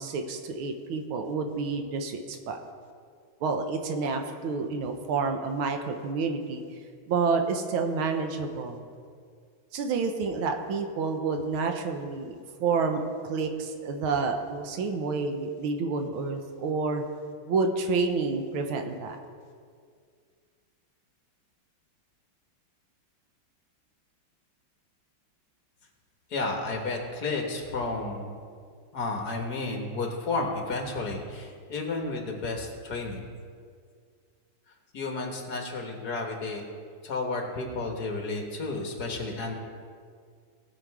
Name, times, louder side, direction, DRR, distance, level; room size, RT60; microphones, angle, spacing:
voice 1, 0.0-2.6 3.4-6.6 7.1-8.9 9.7-12.3 12.6-13.0 13.3-17.0 17.5-19.2, right 4 dB, 90° right, 5 dB, 1.7 m, -29 dB
voice 2, 26.3-28.3 28.9-33.2 34.9-36.6 37.0-39.6, left 3 dB, 55° left, 2 dB, 1.8 m, -32 dB
18.0 x 6.4 x 4.7 m, 2.1 s
omnidirectional pair, 2.2 m